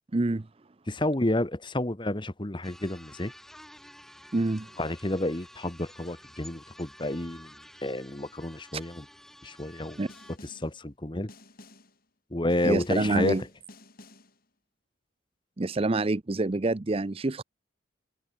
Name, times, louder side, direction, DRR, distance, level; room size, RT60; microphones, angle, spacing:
voice 1, 0.1-0.5 4.3-4.7 10.0-10.1 12.6-13.4 15.6-17.4, right 2 dB, 30° right, 0.5 m, -26 dB
voice 2, 0.9-3.3 4.8-7.5 7.8-9.0 9.4-10.0 10.6-11.3 12.3-13.4, left 1 dB, 25° left, 1.2 m, -30 dB
sound 1, 2.6-10.4, equal, ahead, 3.6 m, -51 dB
Snare drum, 10.1-10.8 11.3-12.0 12.5-14.4, left 2 dB, 45° left, 7.0 m, -51 dB
head